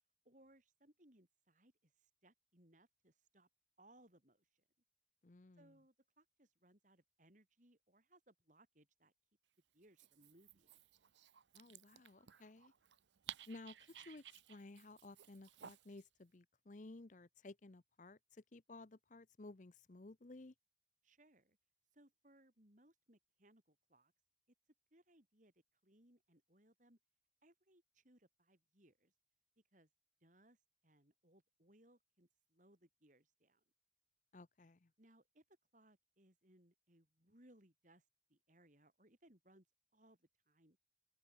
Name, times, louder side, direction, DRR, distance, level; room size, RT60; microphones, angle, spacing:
voice 1, 0.2-3.5 3.8-4.6 5.6-9.1 9.7-10.8 21.0-21.6 21.9-24.1 24.9-25.5 25.8-27.0 27.4-29.1 29.7-29.9 30.2-30.6 30.8-33.6 35.0-35.4 35.7-38.0 38.3-39.7 39.9-40.8, right 1 dB, 45° right, 4.8 m, -69 dB
voice 2, 5.2-5.7 11.5-12.7 13.5-14.2 14.5-20.5 34.3-34.9, left 2 dB, 45° left, 0.7 m, -56 dB
Dog, 9.8-16.0, right 10 dB, 85° right, 0.8 m, -57 dB
open air
head